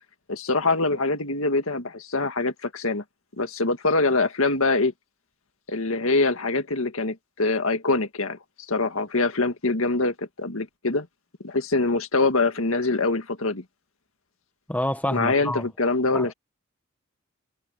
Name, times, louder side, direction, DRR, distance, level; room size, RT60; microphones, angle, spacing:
voice 1, 0.3-3.0 3.4-4.9 5.7-8.4 8.7-11.1 11.4-13.6 15.1-16.3, left 3 dB, 85° left, 1.9 m, -24 dB
voice 2, 14.7-15.6 16.1-16.3, left 1 dB, 5° left, 1.7 m, -28 dB
head